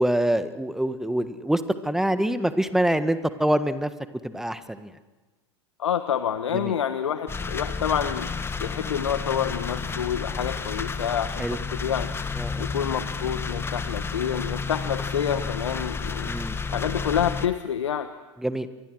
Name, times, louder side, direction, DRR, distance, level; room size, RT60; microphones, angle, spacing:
voice 1, 0.0-3.9 4.2-4.9 6.5-6.7 11.4-11.6 12.3-12.6 16.2-16.6 18.4-18.7, right 1 dB, 5° right, 11 dB, 1.5 m, -25 dB
voice 2, 5.8-8.3 8.6-12.1 12.6-16.3 16.7-18.1, left 9 dB, 75° left, 10 dB, 1.3 m, -28 dB
sound 1, 7.3-17.5, left 5 dB, 15° left, 1.7 m, -31 dB
28.5 x 23.5 x 6.4 m, 1.2 s
figure-of-eight pair, 90°, 15 cm